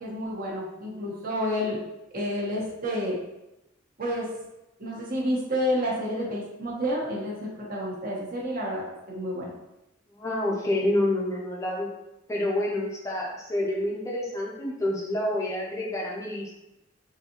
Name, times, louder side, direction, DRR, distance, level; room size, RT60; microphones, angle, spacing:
voice 1, 0.0-1.8 2.1-3.1 4.0-4.3 4.8-9.5, equal, 45° right, -4 dB, 0.9 m, -29 dB
voice 2, 10.1-11.9 12.3-16.5, left 1 dB, 15° left, -3 dB, 0.5 m, -28 dB
3.8 x 2.7 x 2.8 m, 0.93 s
head